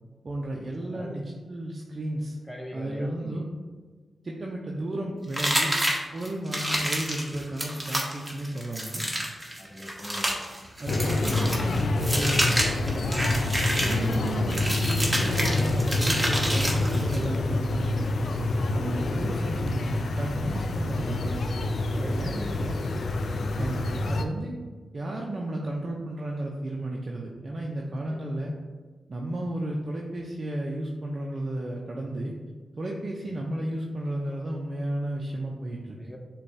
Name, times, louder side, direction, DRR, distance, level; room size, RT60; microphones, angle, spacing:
voice 1, 0.2-2.4 2.7-3.5 4.2-5.7 6.1-9.0 10.8-12.5 12.8-13.3 13.8-18.1 18.7-21.4 21.9-22.8 23.6-24.5 24.9-28.5 29.1-32.3 32.8-36.0, right 1 dB, 45° right, -2 dB, 0.5 m, -33 dB
voice 2, 0.8-1.2 2.4-3.5 6.5-6.7 9.6-10.3 21.1-21.3 21.9-22.7 23.4-23.6 28.0-28.2 33.3-33.4 36.0-36.2, left 1 dB, 15° left, 1 dB, 0.6 m, -41 dB
sound 1, 5.3-17.2, equal, 10° right, 0.9 m, -29 dB
sound 2, 10.9-24.2, left 2 dB, 65° left, 0.3 m, -27 dB
6.6 x 2.3 x 2.7 m, 1.4 s
cardioid pair, 55°, 0 cm